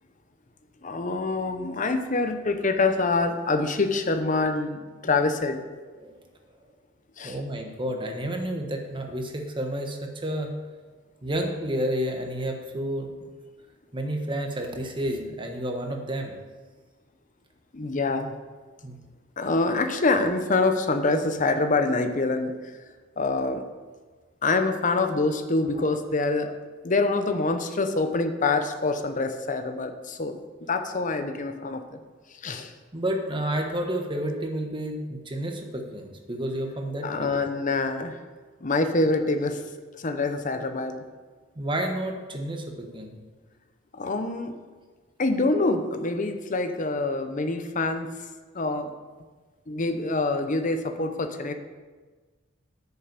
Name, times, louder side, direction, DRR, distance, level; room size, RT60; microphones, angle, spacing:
voice 1, 0.8-5.6 7.2-7.4 17.7-18.3 19.4-22.5 23.2-23.7 24.4-26.5 26.8-32.0 32.4-32.7 37.0-38.2 38.6-39.6 39.9-41.1 43.9-44.6 45.2-48.1 48.5-48.9 49.7-51.5, left 3 dB, 40° left, 8 dB, 0.8 m, -25 dB
voice 2, 7.2-10.5 11.2-13.1 13.9-16.3 18.8-19.0 32.9-37.4 41.6-43.2, right 1 dB, 25° right, 3 dB, 1.3 m, -30 dB
9.2 x 6.8 x 6.8 m, 1.4 s
head